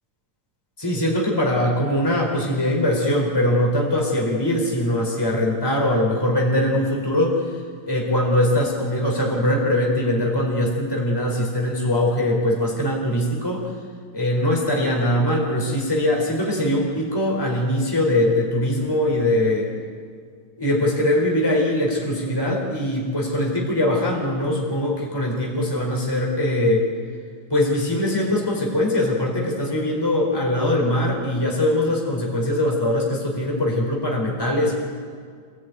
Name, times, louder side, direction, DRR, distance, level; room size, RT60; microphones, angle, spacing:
voice 1, 0.8-7.4 7.8-13.7 14.1-19.7 20.6-26.9 27.5-34.7, left 1 dB, 10° left, -1 dB, 4.2 m, -22 dB
27.0 x 16.5 x 9.5 m, 2.1 s
omnidirectional pair, 2.1 m